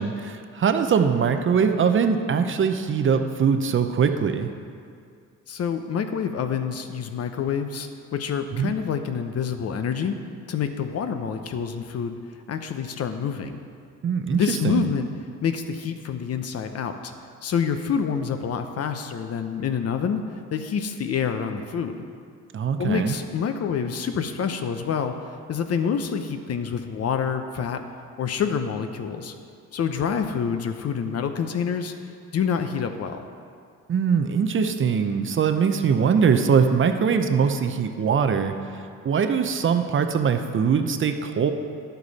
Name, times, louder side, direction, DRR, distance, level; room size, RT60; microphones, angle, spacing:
voice 1, 0.0-4.5 8.5-8.7 14.0-14.9 22.5-23.2 33.9-38.6 39.0-41.5, right 6 dB, 40° right, 7 dB, 0.7 m, -22 dB
voice 2, 5.5-10.2 10.5-12.2 12.5-13.6 14.3-15.1 15.4-17.1 17.4-20.2 20.5-22.0 22.8-25.1 25.5-27.8 28.2-29.3 29.7-31.9 32.3-33.2, left 7 dB, 55° left, 7 dB, 0.8 m, -27 dB
10.0 x 8.1 x 4.1 m, 2.3 s
cardioid pair, 90°, 30 cm